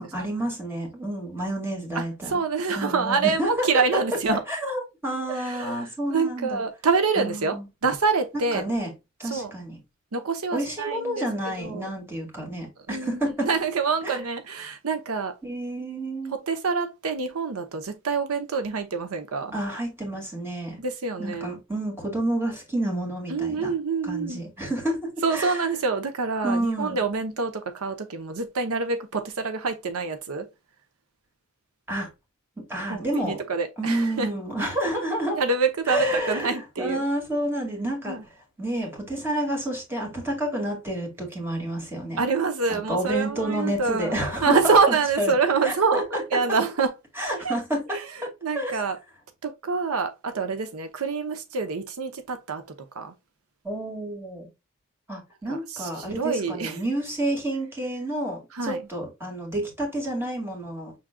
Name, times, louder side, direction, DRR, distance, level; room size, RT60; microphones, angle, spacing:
voice 1, 0.0-2.4 2.8-4.0 4.3-6.6 7.2-7.7 8.3-8.9 9.2-9.8 10.5-13.5 14.0-14.2 15.4-16.3 19.5-20.8 21.2-23.7 24.0-25.7 26.4-27.0 31.9-32.1 32.6-33.4 33.8-35.4 35.9-38.2 38.6-42.2 42.7-45.3 45.6-46.4 47.2-48.0 48.5-48.7 53.6-54.5 55.1-60.9, right 1 dB, 10° right, 2.0 m, -29 dB
voice 2, 1.9-4.4 5.3-7.6 7.8-8.7 9.3-9.5 10.1-11.9 12.9-15.3 16.5-19.5 20.8-21.6 23.3-24.4 25.2-30.5 32.9-34.3 35.3-37.0 38.1-38.2 42.2-44.1 44.4-46.9 47.2-47.6 47.9-48.1 48.4-49.0 49.4-52.6 52.9-53.1 55.5-56.8 58.5-58.8, right 4 dB, 85° right, 0.8 m, -26 dB
6.2 x 3.6 x 2.2 m
head